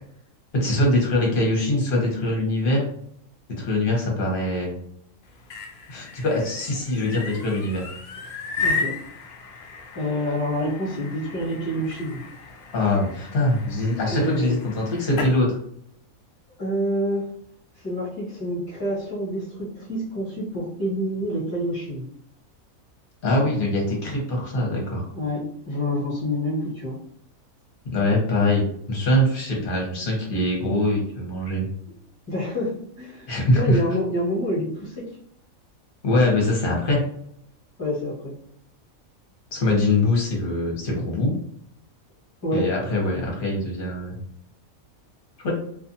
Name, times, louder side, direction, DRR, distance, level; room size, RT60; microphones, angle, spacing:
voice 1, 0.5-2.8 3.6-4.7 5.9-7.8 12.7-15.6 23.2-25.1 27.8-31.7 33.3-33.8 36.0-37.0 39.5-41.3 42.5-44.2 45.4-45.5, left 1 dB, 45° left, -1 dB, 1.0 m, -23 dB
sound 1, 5.2-15.4, left 4 dB, 65° left, 0.6 m, -34 dB
voice 2, 8.6-9.0 9.9-12.2 14.1-14.5 16.6-17.3 17.8-22.1 25.1-27.0 32.3-35.0 37.8-38.4 42.4-42.7, equal, 15° left, -6 dB, 1.1 m, -27 dB
2.5 x 2.4 x 2.7 m, 0.69 s
omnidirectional pair, 1.5 m